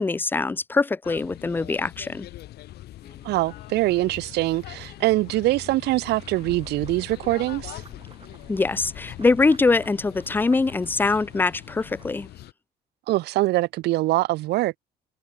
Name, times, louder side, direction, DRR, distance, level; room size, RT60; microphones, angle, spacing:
voice 1, 0.0-2.3 8.5-12.3, left 3 dB, 10° left, 0.5 m, -23 dB
sound 1, 1.0-12.5, left 15 dB, 75° left, 2.3 m, -42 dB
sound 2, 3.0-8.2, left 6 dB, 35° left, 4.8 m, -50 dB
voice 2, 3.2-7.8 13.1-14.8, right 18 dB, 80° right, 0.8 m, -23 dB
sound 3, 6.1-12.2, right 5 dB, 30° right, 4.8 m, -51 dB
cardioid pair, 110°, 17 cm